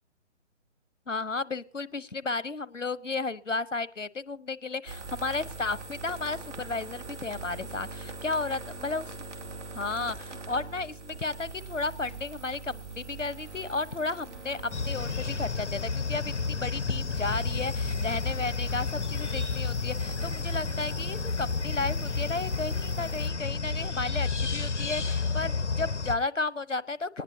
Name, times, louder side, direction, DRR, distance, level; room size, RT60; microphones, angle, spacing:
voice 1, 1.1-9.0 9.7-27.2, left 3 dB, 85° left, 18 dB, 1.1 m, -33 dB
sound 1, 4.9-23.3, right 3 dB, 70° right, 2.4 m, -43 dB
sound 2, 14.7-26.1, left 4 dB, 65° left, 1.4 m, -31 dB
22.5 x 19.0 x 2.8 m, 0.40 s
figure-of-eight pair, 140°, 37 cm